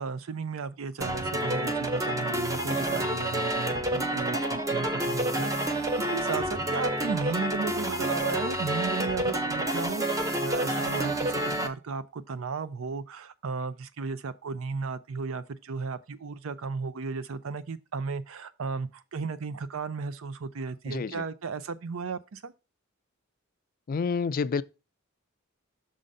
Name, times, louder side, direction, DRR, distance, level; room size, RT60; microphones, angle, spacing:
voice 1, 0.0-10.0 10.4-22.5, right 4 dB, 75° right, 0.5 m, -34 dB
sound 1, 1.0-11.7, right 1 dB, 15° right, 0.7 m, -29 dB
voice 2, 20.9-21.2 23.9-24.6, left 5 dB, 45° left, 0.3 m, -29 dB
6.4 x 3.8 x 5.4 m
head